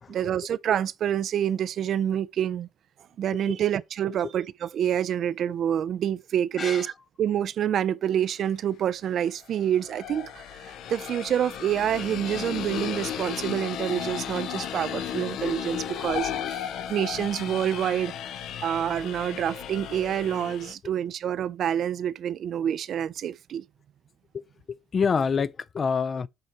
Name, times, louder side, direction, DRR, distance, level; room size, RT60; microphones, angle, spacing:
voice 1, 0.1-2.7 3.2-6.9 7.2-18.1 18.6-23.6, right 10 dB, 55° right, 0.4 m, -27 dB
voice 2, 6.6-6.9 24.3-26.3, left 5 dB, 35° left, 0.4 m, -27 dB
sound 1, 8.3-8.4 9.4-20.7, left 9 dB, 75° left, 0.7 m, -34 dB
6.6 x 4.7 x 4.2 m
cardioid pair, 115°, 0 cm